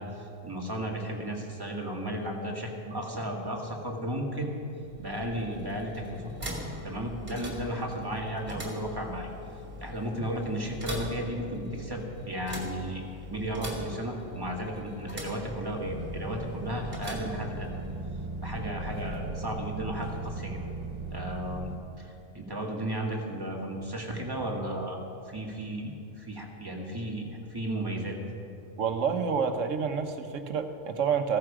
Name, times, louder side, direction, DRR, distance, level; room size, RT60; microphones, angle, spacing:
voice 1, 0.0-4.6 5.0-6.3 6.8-9.3 9.8-17.7 18.4-20.8 21.1-28.2, right 1 dB, 20° right, -1 dB, 1.8 m, -34 dB
sound 1, 4.8-18.1, equal, 35° right, 2.6 m, -42 dB
sound 2, 15.8-21.8, right 2 dB, 60° right, 1.7 m, -38 dB
voice 2, 28.8-31.4, right 6 dB, 80° right, 7 dB, 1.3 m, -28 dB
15.5 x 14.0 x 5.0 m, 2.6 s
omnidirectional pair, 1.3 m